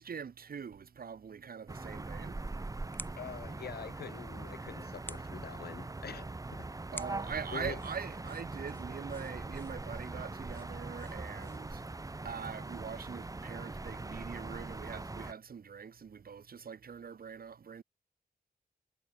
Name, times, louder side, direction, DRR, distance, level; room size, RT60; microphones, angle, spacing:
voice 1, 0.0-2.4 6.9-17.8, right 6 dB, 70° right, 6.8 m, -43 dB
sound 1, 1.7-15.3, right 2 dB, 20° right, 1.3 m, -42 dB
sound 2, 2.8-11.8, left 1 dB, 10° left, 5.5 m, -53 dB
voice 2, 3.2-6.7 7.5-7.8, left 7 dB, 80° left, 5.1 m, -45 dB
wide cardioid pair, 90°, 16 cm